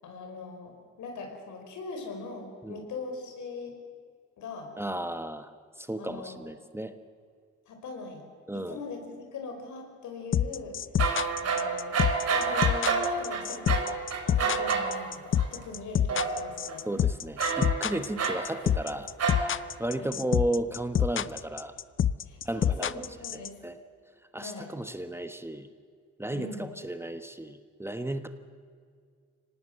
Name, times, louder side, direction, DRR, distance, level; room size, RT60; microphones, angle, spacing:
voice 1, 0.0-3.7 4.4-4.7 6.0-6.5 7.7-8.3 8.5-10.8 11.4-12.0 12.3-13.8 14.3-16.9 20.0-20.1 22.3-23.6 24.4-24.7 26.3-26.7, left 4 dB, 75° left, 4 dB, 5.4 m, -40 dB
voice 2, 4.8-5.5 5.8-6.9 8.5-8.8 16.8-19.1 19.8-21.7 22.4-22.9 23.3-23.8 24.3-25.7 26.2-28.3, right 1 dB, 10° right, 9 dB, 1.2 m, -34 dB
sound 1, 10.3-23.5, left 9 dB, 40° left, 0.7 m, -26 dB
sound 2, 11.0-15.0 15.4-15.6 16.1-16.7 17.4-18.9 19.2-19.7, right 5 dB, 55° right, 4.0 m, -29 dB
24.5 x 18.5 x 7.8 m, 2.1 s
cardioid pair, 90°, 30 cm